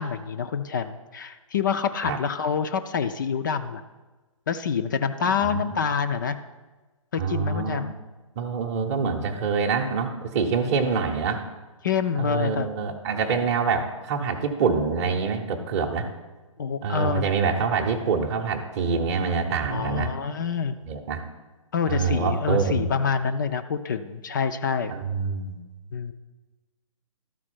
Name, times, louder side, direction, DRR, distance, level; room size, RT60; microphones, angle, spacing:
voice 1, 0.0-3.8 4.5-6.4 7.1-7.9 10.6-10.9 11.8-12.7 16.6-17.2 19.7-20.8 21.7-24.9 25.9-26.1, left 6 dB, 35° left, 9 dB, 0.4 m, -27 dB
voice 2, 5.2-5.7 7.2-8.0 8.4-11.4 12.2-16.1 16.8-20.1 20.8-21.2 21.9-22.9 24.9-25.6, right 5 dB, 30° right, 2 dB, 0.7 m, -26 dB
12.5 x 4.2 x 4.3 m, 1.2 s
figure-of-eight pair, 130°, 17 cm